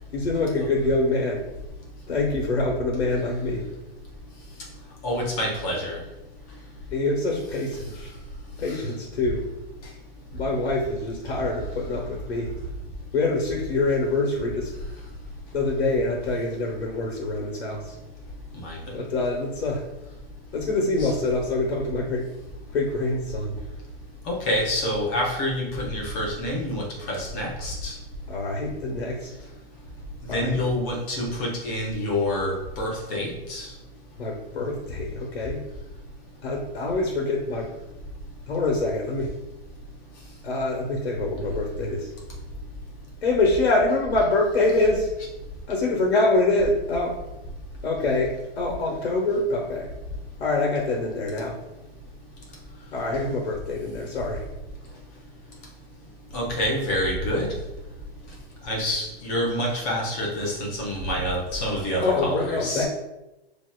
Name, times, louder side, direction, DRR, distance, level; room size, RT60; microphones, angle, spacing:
voice 1, 0.1-1.4 2.1-3.7 6.9-8.1 8.6-9.4 10.3-12.5 13.1-14.7 15.5-18.0 18.9-19.8 20.5-22.3 22.7-23.5 28.3-29.3 30.3-30.6 34.2-35.6 36.4-37.7 38.5-39.3 40.4-42.1 43.2-45.1 45.7-47.1 47.8-49.9 50.4-51.6 52.9-54.4 61.9-62.9, left 2 dB, 80° left, -1 dB, 1.1 m, -25 dB
voice 2, 5.0-6.0 18.6-18.8 21.0-21.1 24.3-27.9 30.3-33.7 56.3-57.5 58.7-62.9, left 1 dB, 15° left, -2 dB, 0.5 m, -27 dB
6.7 x 2.8 x 2.2 m, 0.97 s
hypercardioid pair, 165°, 31 cm